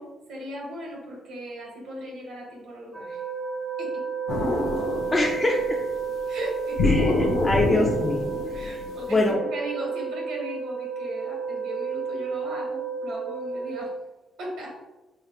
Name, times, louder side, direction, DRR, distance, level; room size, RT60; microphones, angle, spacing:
voice 1, 0.0-3.2 3.8-3.9 6.3-6.9 8.5-13.9 14.4-14.7, equal, 85° right, -2 dB, 1.4 m, -37 dB
sound 1, 2.9-13.8, right 5 dB, 25° right, 0.7 m, -32 dB
sound 2, 4.3-5.8 6.8-9.2, left 2 dB, 80° left, 0.6 m, -25 dB
voice 2, 5.1-5.8 6.8-8.3 8.7-8.8 9.1-9.4, left 2 dB, 20° left, -1 dB, 0.5 m, -24 dB
4.5 x 3.3 x 2.3 m, 1.1 s
cardioid pair, 90°, 0 cm